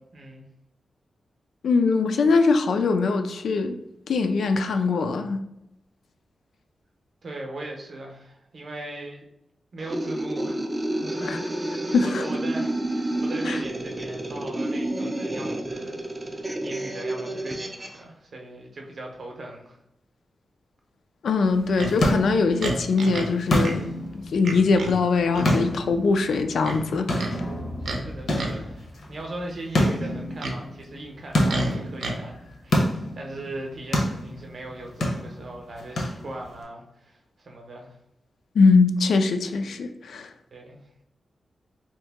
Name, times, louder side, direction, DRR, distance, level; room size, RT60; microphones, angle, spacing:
voice 1, 0.1-0.4 7.2-9.2 9.7-16.4 16.6-19.8 28.1-38.0 40.5-40.8, right 2 dB, 45° right, 1 dB, 0.7 m, -39 dB
voice 2, 1.6-3.8 4.1-5.4 11.3-11.4 11.9-12.2 13.5-13.6 21.2-23.9 24.3-27.4 38.6-40.3, left 4 dB, 75° left, 7 dB, 0.3 m, -22 dB
sound 1, 9.8-18.0, right 1 dB, 20° right, 0.3 m, -29 dB
sound 2, 21.5-36.6, left 1 dB, 60° left, 0.7 m, -29 dB
Livestock farm animals working animals, 21.8-22.0 22.6-23.3 23.6-23.8 24.4-25.0 25.3-25.6 26.6-27.3 27.8-28.0 28.4-28.7 30.0-30.6 31.5-32.2, right 2 dB, 90° right, 0.6 m, -30 dB
2.8 x 2.6 x 3.5 m, 0.85 s
wide cardioid pair, 180°, 0 cm